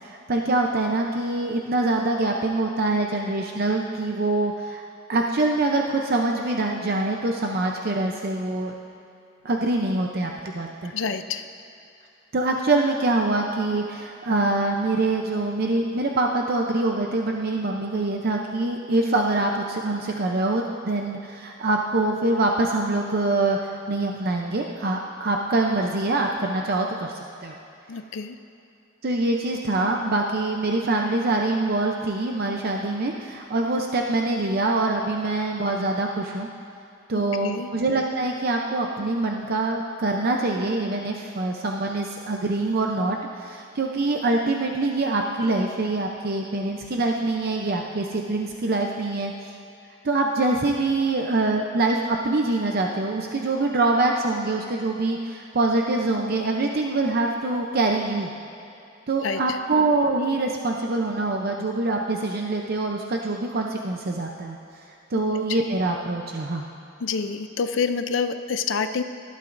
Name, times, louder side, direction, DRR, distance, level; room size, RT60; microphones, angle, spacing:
voice 1, 0.0-4.8 5.1-8.7 9.4-10.9 12.3-27.1 27.4-27.6 29.0-36.5 37.1-49.3 50.0-58.3 59.1-64.6 65.1-66.6, right 2 dB, 55° right, 1 dB, 0.7 m, -24 dB
voice 2, 10.8-11.4 27.9-28.4 37.4-37.7 59.2-59.4 65.1-65.2 67.0-69.0, left 5 dB, 75° left, 9 dB, 0.5 m, -27 dB
19.0 x 11.5 x 2.6 m, 2.7 s
head